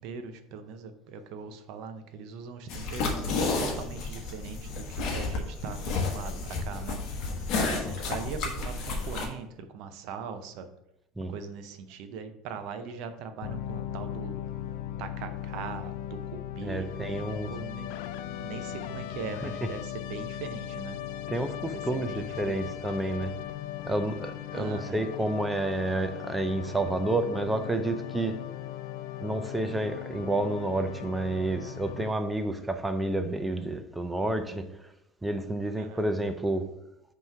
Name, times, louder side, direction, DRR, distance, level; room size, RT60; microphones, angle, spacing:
voice 1, 0.0-3.1 3.6-7.0 7.7-10.7 11.3-14.4 15.0-17.9 18.4-21.0 21.7-22.7 24.5-25.1 35.8-36.0, right 6 dB, 60° right, 0.6 m, -40 dB
sound 1, 2.7-9.3, left 3 dB, 50° left, 1.2 m, -31 dB
sound 2, 13.4-32.1, left 11 dB, 75° left, 0.3 m, -38 dB
voice 2, 16.6-17.5 19.4-19.7 21.3-23.4 23.8-28.5 29.2-34.7 35.2-36.7, right 2 dB, 10° right, 0.4 m, -30 dB
5.6 x 3.1 x 5.6 m
cardioid pair, 155°, 0 cm